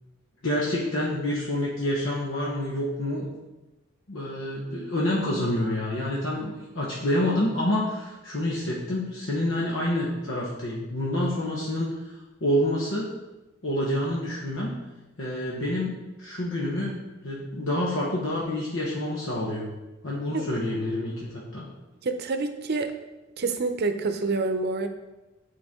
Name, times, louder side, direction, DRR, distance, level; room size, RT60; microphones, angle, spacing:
voice 1, 0.4-3.3 4.1-11.9 12.4-13.1 13.6-14.7 15.2-17.0 17.2-19.7 20.0-21.6, left 1 dB, 75° left, -4 dB, 1.3 m, -28 dB
voice 2, 22.0-22.9 23.4-24.9, right 3 dB, 55° right, 7 dB, 0.6 m, -27 dB
9.0 x 4.6 x 3.7 m, 1.1 s
head